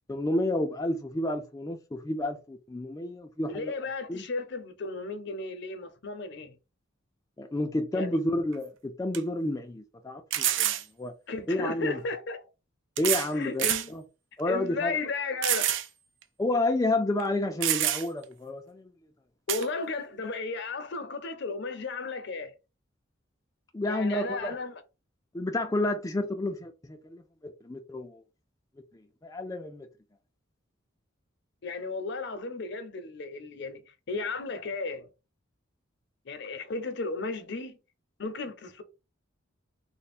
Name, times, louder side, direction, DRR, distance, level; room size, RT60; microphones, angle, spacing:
voice 1, 0.1-3.7 4.1-4.2 7.4-11.1 11.5-12.0 13.0-13.6 13.9-14.0 14.4-14.9 16.4-18.9 23.7-24.5 25.3-28.2 29.2-29.9, left 1 dB, 15° left, 0.3 m, -30 dB
voice 2, 3.5-6.5 7.9-8.2 11.3-12.4 13.3-13.9 14.5-15.8 19.5-22.5 23.9-24.7 31.6-35.1 36.3-37.8 38.2-38.8, left 3 dB, 60° left, 0.6 m, -34 dB
sound 1, 8.5-8.6 9.1-9.2 10.3-10.9 12.0-12.1 13.0-13.3 13.6-13.9 14.4-14.5 15.4-15.9 16.2-16.3 17.2-17.3 17.6-18.2 19.5-19.7, right 11 dB, 70° right, 0.4 m, -27 dB
3.3 x 2.1 x 4.1 m
head